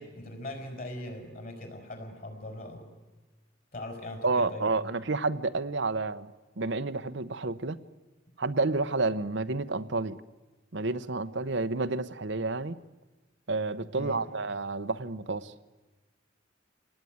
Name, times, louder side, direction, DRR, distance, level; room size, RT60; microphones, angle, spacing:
voice 1, 0.0-2.9 3.7-5.0 13.9-14.2, left 1 dB, 50° left, 5 dB, 5.5 m, -40 dB
voice 2, 4.2-6.3 6.6-7.8 8.4-10.2 10.7-12.8 13.5-15.5, right 3 dB, 65° right, 11 dB, 0.9 m, -30 dB
27.5 x 19.5 x 9.5 m, 1.2 s
head